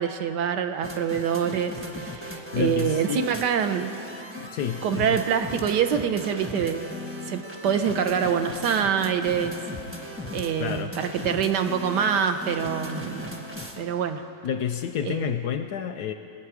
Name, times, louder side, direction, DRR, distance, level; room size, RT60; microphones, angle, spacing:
voice 1, 0.0-3.9 4.8-6.9 7.3-9.6 10.3-13.4 13.8-14.2 15.0-15.3, right 8 dB, 70° right, 7 dB, 1.2 m, -25 dB
sound 1, 0.8-13.8, left 1 dB, 10° right, 0.8 m, -37 dB
voice 2, 2.5-3.3 4.4-5.2 10.6-10.9 14.4-16.1, left 9 dB, 70° left, 8 dB, 1.0 m, -29 dB
21.0 x 9.0 x 4.8 m, 2.5 s
omnidirectional pair, 2.1 m